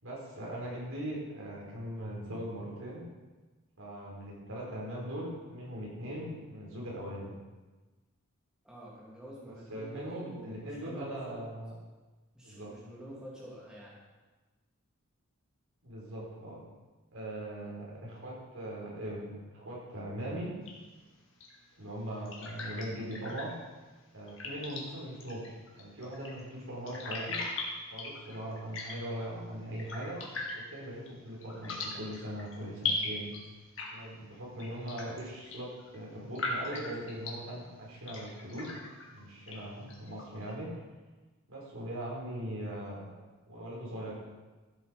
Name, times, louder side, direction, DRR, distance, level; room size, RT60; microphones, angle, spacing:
voice 1, 0.0-3.0 3.8-7.3 9.5-11.7 12.4-12.7 15.8-16.6 17.1-20.5 21.8-23.5 24.1-27.4 27.9-30.2 30.5-33.3 33.9-38.7 39.0-40.8 41.5-43.2 43.5-44.1, right 1 dB, 75° right, -4 dB, 4.8 m, -40 dB
voice 2, 8.6-11.4 12.3-14.0, right 1 dB, 5° right, -6 dB, 2.9 m, -47 dB
sound 1, 20.6-40.5, left 3 dB, 65° left, 2.3 m, -42 dB
14.0 x 8.2 x 5.3 m, 1.2 s
head